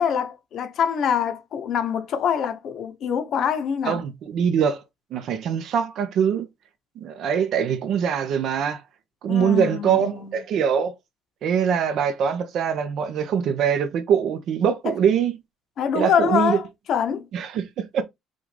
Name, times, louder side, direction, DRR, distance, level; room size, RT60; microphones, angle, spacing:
voice 1, 0.0-4.0 9.3-10.4 15.8-17.3, left 7 dB, 45° left, 0.8 m, -25 dB
voice 2, 3.8-4.8 5.1-6.5 7.0-8.8 9.2-11.0 11.4-15.4 15.9-16.6 17.3-18.0, right 7 dB, 55° right, 0.9 m, -23 dB
5.7 x 2.5 x 3.3 m
cardioid pair, 155°, 0 cm